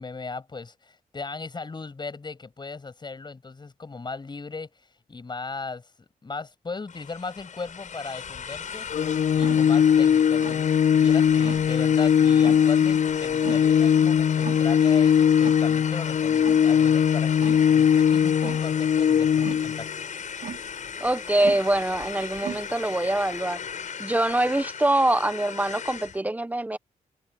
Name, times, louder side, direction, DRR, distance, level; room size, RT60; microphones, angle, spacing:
voice 1, 0.0-8.9 9.3-19.9, left 4 dB, 30° left, 7.2 m, -37 dB
sound 1, 6.9-26.2, left 7 dB, 60° left, 7.0 m, -36 dB
sound 2, 8.6-23.4, right 9 dB, 80° right, 2.6 m, -43 dB
Organ, 8.9-19.9, left 8 dB, 80° left, 1.3 m, -20 dB
voice 2, 21.0-23.6 24.0-26.8, right 1 dB, 10° right, 1.1 m, -24 dB
open air
cardioid pair, 100°, 14 cm